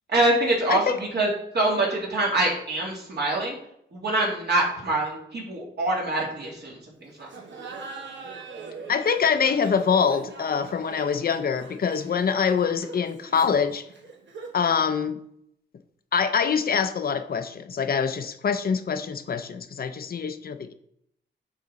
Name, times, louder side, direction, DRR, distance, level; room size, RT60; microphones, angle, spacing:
voice 1, 0.1-1.3 1.5-3.6 3.9-7.3, right 2 dB, 60° right, -3 dB, 2.4 m, -25 dB
Laughter, 7.2-14.7, right 4 dB, 80° right, 1.2 m, -42 dB
voice 2, 8.9-13.8 14.5-15.2 16.1-20.7, left 6 dB, 55° left, 9 dB, 0.5 m, -24 dB
9.7 x 3.9 x 4.1 m, 0.74 s
wide cardioid pair, 125°, 19 cm